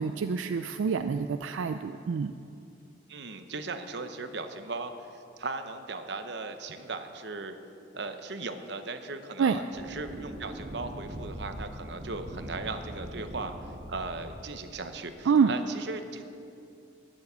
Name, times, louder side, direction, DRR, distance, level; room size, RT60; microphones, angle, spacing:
voice 1, 0.0-2.3 9.4-9.6 15.3-15.5, right 6 dB, 85° right, 9 dB, 0.4 m, -26 dB
voice 2, 3.1-7.5 7.9-13.5 13.9-16.2, right 3 dB, 60° right, 8 dB, 0.9 m, -37 dB
sound 1, 9.7-14.7, right 1 dB, 40° right, 1.2 m, -41 dB
12.0 x 9.7 x 6.8 m, 2.6 s
head